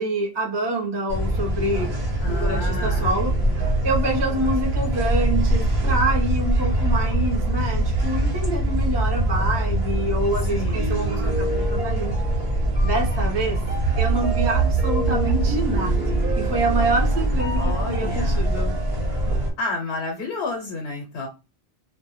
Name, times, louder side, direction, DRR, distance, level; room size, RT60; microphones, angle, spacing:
voice 1, 0.0-1.9 2.4-3.4 3.8-12.1 12.8-13.6 14.0-18.7, right 2 dB, 30° right, 0.6 m, -26 dB
sound 1, 1.1-19.5, right 1 dB, 90° right, 1.1 m, -23 dB
voice 2, 2.2-3.1 10.4-11.1 17.6-18.5 19.6-21.3, left 3 dB, 85° left, 0.8 m, -31 dB
2.1 x 2.1 x 2.8 m
omnidirectional pair, 1.0 m